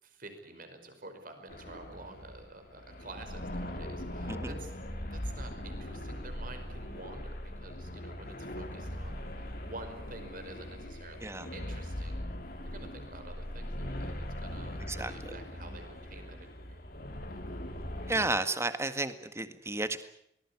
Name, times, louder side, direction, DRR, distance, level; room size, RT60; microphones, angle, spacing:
voice 1, 0.0-4.7 5.1-12.3 12.6-16.8, right 2 dB, 50° right, 7 dB, 5.2 m, -49 dB
sound 1, 1.5-18.3, left 1 dB, 55° left, 3.4 m, -40 dB
voice 2, 18.1-20.0, right 2 dB, 15° right, 11 dB, 1.7 m, -32 dB
24.0 x 19.5 x 9.7 m, 0.74 s
head